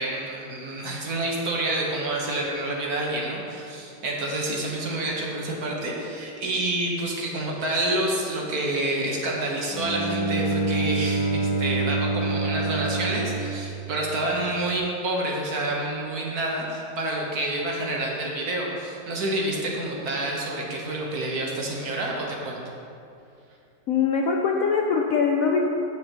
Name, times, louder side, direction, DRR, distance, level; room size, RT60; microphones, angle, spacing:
voice 1, 0.0-22.6, right 1 dB, 60° right, -2 dB, 1.7 m, -28 dB
Bowed string instrument, 9.7-14.5, right 3 dB, 15° left, 1.2 m, -27 dB
voice 2, 23.9-25.7, left 5 dB, 70° left, 1 dB, 0.8 m, -22 dB
15.5 x 5.7 x 3.0 m, 2.6 s
omnidirectional pair, 1.9 m